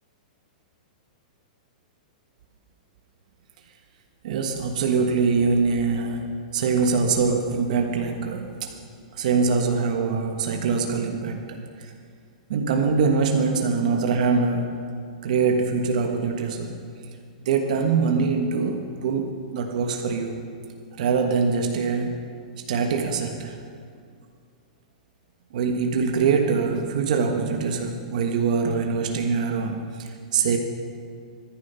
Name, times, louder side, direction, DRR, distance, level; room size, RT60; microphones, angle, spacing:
voice 1, 4.2-8.7 9.1-11.9 12.5-14.8 15.2-16.8 17.4-20.4 21.0-22.2 22.7-23.6 25.5-30.6, right 5 dB, 65° right, 3 dB, 1.4 m, -23 dB
25.0 x 10.5 x 5.6 m, 2.3 s
hypercardioid pair, 150°, 4 cm